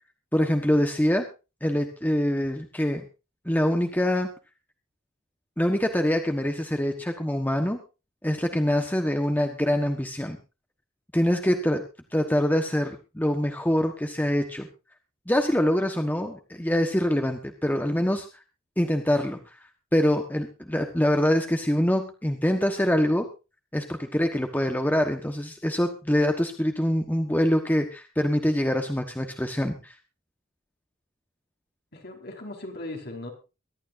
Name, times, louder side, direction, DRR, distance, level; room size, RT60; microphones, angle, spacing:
voice 1, 0.3-1.3 1.6-3.0 3.4-4.3 5.6-7.8 8.2-10.4 11.1-11.8 12.1-14.7 15.3-18.3 18.8-23.3 23.7-29.9, equal, 10° left, 5 dB, 1.2 m, -24 dB
voice 2, 31.9-33.3, left 2 dB, 50° left, 2 dB, 4.9 m, -38 dB
23.5 x 12.0 x 2.6 m, 0.30 s
head